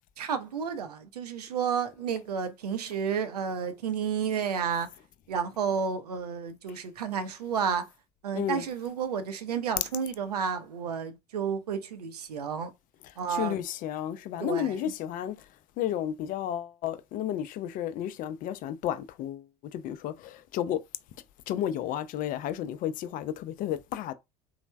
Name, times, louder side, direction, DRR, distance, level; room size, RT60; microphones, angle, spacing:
voice 1, 0.2-4.9 5.3-7.9 8.2-12.7 13.2-13.6 14.4-14.7, right 7 dB, 85° right, 0.5 m, -31 dB
voice 2, 8.3-8.7 13.0-15.4 15.8-19.5 19.7-20.8 21.5-24.1, left 10 dB, 45° left, 0.4 m, -32 dB
3.1 x 2.0 x 2.2 m
hypercardioid pair, 70°, 20 cm